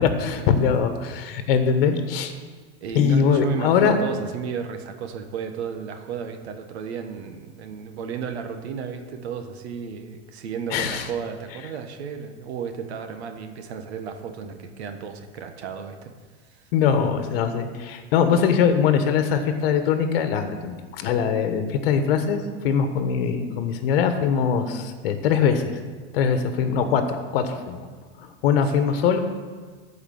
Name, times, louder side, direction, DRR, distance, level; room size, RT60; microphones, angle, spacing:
voice 1, 0.0-2.3 2.9-4.0 10.7-11.1 16.7-25.8 26.1-27.8 28.2-29.2, left 7 dB, 60° left, 8 dB, 1.3 m, -22 dB
voice 2, 2.8-16.1 16.5-16.7 28.6-28.8, right 6 dB, 75° right, 7 dB, 1.3 m, -33 dB
14.0 x 5.0 x 6.5 m, 1.5 s
supercardioid pair, 165°, 32 cm